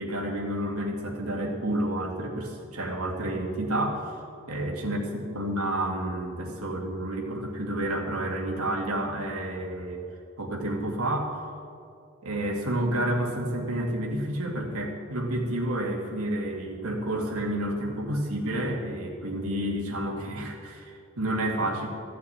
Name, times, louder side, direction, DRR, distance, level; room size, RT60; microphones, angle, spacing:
voice 1, 0.0-4.1 4.5-10.0 10.4-11.4 12.2-21.9, right 1 dB, 90° right, 1 dB, 2.2 m, -30 dB
14.5 x 6.5 x 8.7 m, 2.4 s
head